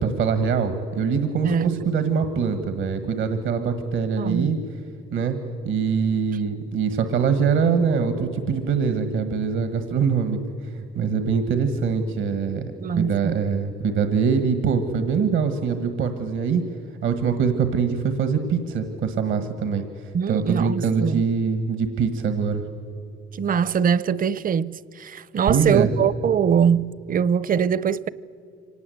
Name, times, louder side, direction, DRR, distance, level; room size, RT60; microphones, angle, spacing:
voice 1, 0.0-4.6 5.1-5.4 5.6-10.4 10.7-16.6 17.0-19.8 20.3-22.6 25.5-25.9, right 6 dB, 80° right, 1.5 m, -23 dB
voice 2, 1.4-1.9 4.2-4.5 12.8-13.4 20.1-21.2 23.3-28.1, right 7 dB, 45° right, 0.6 m, -23 dB
25.0 x 18.5 x 7.9 m
cardioid pair, 90°, 20 cm